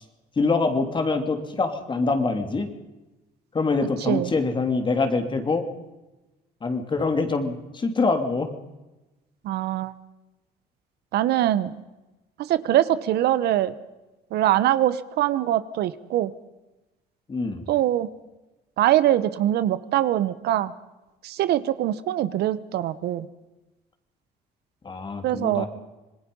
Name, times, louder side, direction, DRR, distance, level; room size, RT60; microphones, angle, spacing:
voice 1, 0.4-2.7 3.5-5.7 6.6-8.6 17.3-17.7 24.8-25.7, left 3 dB, 30° left, 6 dB, 3.0 m, -24 dB
voice 2, 9.4-9.9 11.1-11.8 12.4-13.7 14.3-16.3 17.7-18.1 18.8-20.7 21.2-23.3 25.2-25.6, right 13 dB, 75° right, 14 dB, 1.1 m, -23 dB
26.5 x 20.5 x 5.5 m, 1.0 s
cardioid pair, 110°, 17 cm